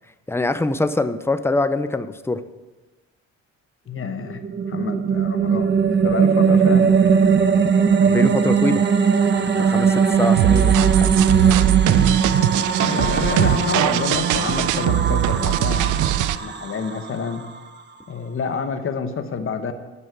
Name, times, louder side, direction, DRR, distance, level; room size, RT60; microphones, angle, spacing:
voice 1, 0.3-2.4 8.0-8.8 9.6-11.1, left 2 dB, 10° left, 11 dB, 0.6 m, -24 dB
voice 2, 3.9-4.4 4.7-5.7 6.0-6.9 12.8-17.5 18.1-19.7, left 5 dB, 45° left, 9 dB, 1.1 m, -28 dB
sound 1, 4.2-17.6, right 6 dB, 35° right, 1.0 m, -19 dB
sound 2, 10.4-16.4, right 12 dB, 80° right, 0.5 m, -20 dB
11.0 x 5.4 x 8.1 m, 1.2 s
cardioid pair, 90°, 30 cm